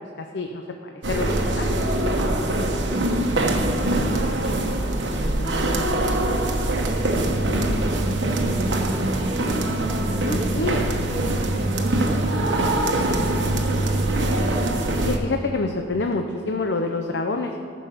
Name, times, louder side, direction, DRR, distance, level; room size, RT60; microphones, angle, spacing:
voice 1, 0.2-1.7 10.1-10.9 15.0-17.5, left 3 dB, 65° left, 4 dB, 0.7 m, -27 dB
sound 1, 1.0-15.2, right 1 dB, 75° right, 1.2 m, -23 dB
voice 2, 2.3-6.5 6.9-9.6 10.0-14.2, right 1 dB, 35° right, 2 dB, 1.3 m, -35 dB
14.5 x 6.3 x 6.7 m, 2.7 s
head